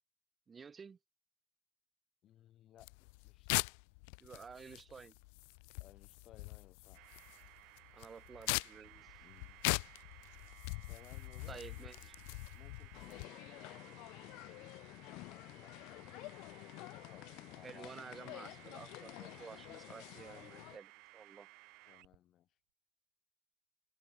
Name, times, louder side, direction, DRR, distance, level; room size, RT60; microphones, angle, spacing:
voice 1, 0.5-1.0 4.2-5.1 7.9-9.2 11.5-12.1 17.6-21.5, right 5 dB, 20° right, 1.6 m, -52 dB
voice 2, 2.2-3.9 5.8-7.1 8.9-10.1 10.9-12.1 12.5-16.3 16.9-18.5 21.9-22.6, left 12 dB, 45° left, 6.4 m, -62 dB
sound 1, 2.8-13.3, left 33 dB, 90° left, 0.5 m, -41 dB
sound 2, 6.9-22.2, right 24 dB, 70° right, 5.0 m, -60 dB
sound 3, 12.9-20.8, left 23 dB, 70° left, 2.0 m, -51 dB
cardioid pair, 145°, 0 cm